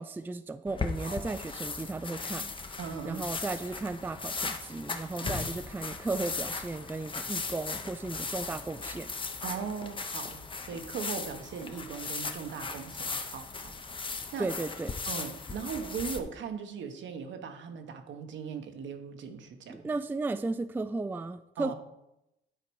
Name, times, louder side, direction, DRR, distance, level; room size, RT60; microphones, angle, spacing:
voice 1, 0.0-2.5 3.0-9.1 14.4-15.0 19.7-21.7, right 3 dB, 10° right, 11 dB, 0.3 m, -35 dB
sound 1, 0.7-16.2, left 4 dB, 25° left, 0.8 m, -37 dB
voice 2, 1.0-1.4 2.8-3.3 5.2-5.3 9.4-13.8 14.0-14.5 15.1-19.9 21.6-21.7, right 6 dB, 70° right, 6 dB, 1.1 m, -39 dB
10.0 x 4.1 x 4.6 m, 0.87 s
cardioid pair, 90°, 20 cm